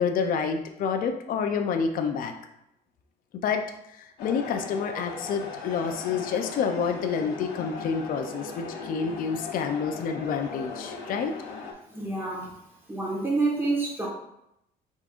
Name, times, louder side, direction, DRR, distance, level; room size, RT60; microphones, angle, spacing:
voice 1, 0.0-2.3 3.4-3.6 4.0-11.3, left 6 dB, 55° left, 5 dB, 0.5 m, -28 dB
sound 1, 4.2-11.7, left 4 dB, 85° left, 0.9 m, -38 dB
voice 2, 11.9-12.5 12.9-14.1, right 3 dB, 15° right, -4 dB, 1.4 m, -27 dB
5.1 x 3.6 x 2.5 m, 0.81 s
cardioid pair, 110°, 17 cm